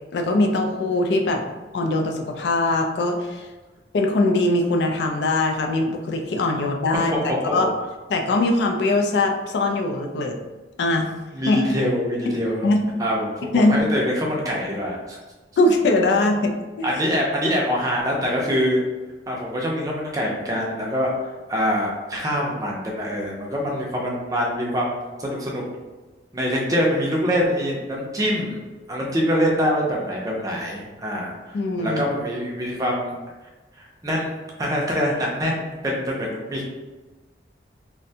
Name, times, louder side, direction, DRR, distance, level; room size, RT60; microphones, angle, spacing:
voice 1, 0.1-1.4 1.7-3.5 3.9-7.1 7.5-7.7 8.1-10.4 10.8-11.1 11.5-11.6 12.6-12.8 13.5-13.8 15.6-16.5 31.5-32.1, left 2 dB, 70° left, 3 dB, 0.3 m, -21 dB
voice 2, 11.3-12.7 13.0-15.2 16.8-18.8 19.3-25.6 26.3-28.6 28.9-33.1 33.8-36.7, equal, 20° right, -2 dB, 0.4 m, -24 dB
2.5 x 2.1 x 2.7 m, 1.2 s
head